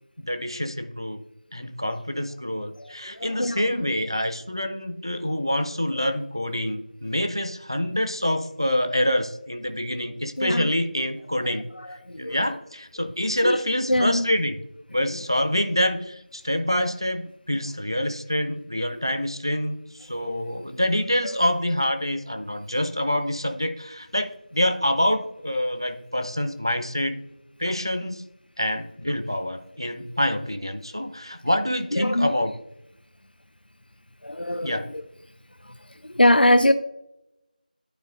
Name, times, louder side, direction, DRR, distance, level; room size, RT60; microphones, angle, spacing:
voice 1, 0.2-1.2 1.5-11.7 12.2-14.6 14.9-27.2 27.6-28.2 28.6-32.5 34.6-34.9, left 1 dB, 30° right, 8 dB, 0.5 m, -26 dB
voice 2, 2.8-3.9 10.4-10.7 11.4-12.4 13.4-13.6 13.9-14.3 15.1-15.2 21.2-21.3 31.9-32.3 34.2-35.0 35.6-35.7 36.0-36.7, left 1 dB, 85° left, 9 dB, 0.4 m, -23 dB
12.5 x 4.6 x 2.5 m, 0.86 s
figure-of-eight pair, 180°, 5 cm